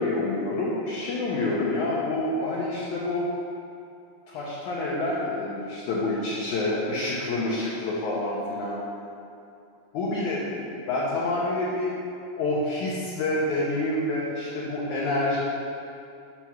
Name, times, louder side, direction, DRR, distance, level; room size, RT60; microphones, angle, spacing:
voice 1, 0.0-3.3 4.3-8.8 9.9-12.0 12.4-15.4, left 2 dB, 75° left, -6 dB, 1.8 m, -27 dB
6.9 x 6.0 x 5.9 m, 2.6 s
omnidirectional pair, 4.8 m